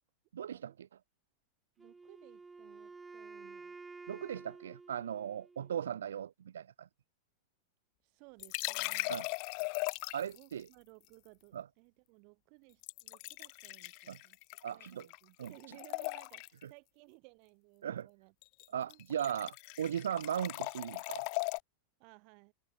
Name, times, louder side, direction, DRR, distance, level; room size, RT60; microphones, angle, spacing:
voice 1, 0.3-0.9 4.1-6.9 9.1-9.3 10.1-10.7 11.5-11.7 14.1-14.2 14.6-15.1 15.4-15.5 16.6-16.7 17.8-18.1 18.7-21.3, right 9 dB, 65° right, 0.7 m, -38 dB
Wind instrument woodwind instrument, 1.8-5.8, right 4 dB, 10° right, 1.9 m, -51 dB
voice 2, 1.8-3.8 8.0-9.3 10.2-14.4 14.7-18.3 18.8-19.0 22.0-22.5, right 36 dB, 45° right, 5.1 m, -60 dB
sound 1, 8.4-10.4 12.8-15.2 15.4-16.6 18.4-18.7 18.9-21.6, left 40 dB or more, 45° left, 0.7 m, -39 dB
figure-of-eight pair, 90°, 0 cm